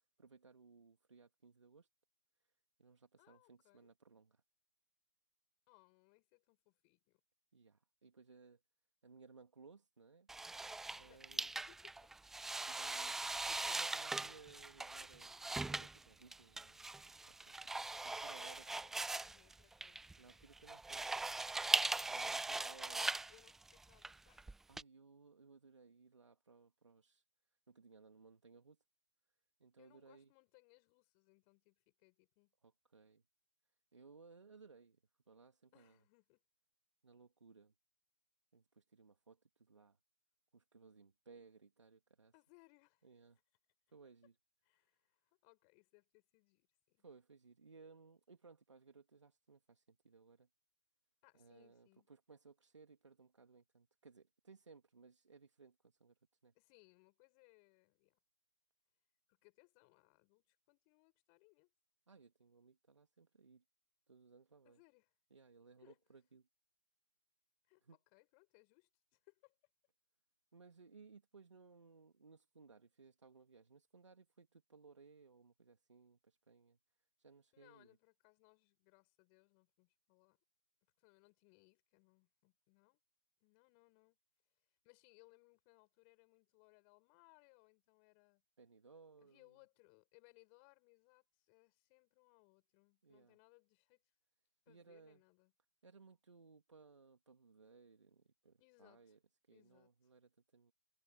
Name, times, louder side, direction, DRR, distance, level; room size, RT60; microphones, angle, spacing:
voice 1, 0.2-1.9 2.8-4.4 7.5-8.6 9.0-10.3 11.0-11.5 12.7-13.2 13.4-16.9 17.2-17.6 18.0-18.6 20.2-21.2 22.1-23.1 24.7-27.2 27.7-28.8 29.6-30.3 32.6-33.2 33.9-35.0 35.3-36.0 37.0-37.7 38.5-40.0 40.5-42.3 43.0-43.4 43.9-44.4 47.0-50.5 51.3-56.1 56.4-56.5 62.1-63.6 64.1-64.8 65.3-66.5 67.8-68.0 70.5-76.8 77.2-78.0 88.6-89.6 93.0-93.4 94.7-95.2 95.8-99.2 99.5-100.7, right 4 dB, 80° right, 2.7 m, -62 dB
voice 2, 3.2-3.9 5.7-7.2 11.0-12.1 12.8-13.0 15.9-16.0 18.3-20.1 22.8-24.7 29.8-32.5 35.7-36.4 42.3-43.1 44.6-47.0 51.2-52.1 56.5-58.2 59.3-61.7 64.6-65.1 65.8-66.0 67.7-67.8 68.1-69.6 77.5-80.4 81.0-83.0 83.4-84.2 84.8-88.4 89.2-94.0 94.7-95.5 98.6-99.2 99.5-99.9, left 40 dB or more, 30° left, 7.2 m, -69 dB
sound 1, 10.3-24.8, right 2 dB, ahead, 0.3 m, -40 dB
figure-of-eight pair, 135°, 15 cm